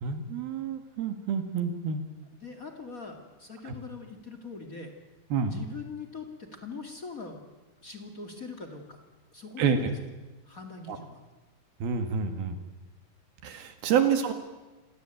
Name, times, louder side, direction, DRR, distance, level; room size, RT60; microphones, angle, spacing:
voice 1, 0.0-2.1 3.6-3.7 5.3-5.5 9.6-9.8 10.9-11.0 11.8-12.6 13.4-14.3, right 7 dB, 60° right, 8 dB, 3.3 m, -28 dB
voice 2, 2.4-4.9 5.5-7.4 7.8-9.0 9.3-9.9 10.4-11.2 14.1-14.3, left 4 dB, 45° left, 4 dB, 1.1 m, -42 dB
27.5 x 18.0 x 9.0 m, 1.2 s
omnidirectional pair, 5.3 m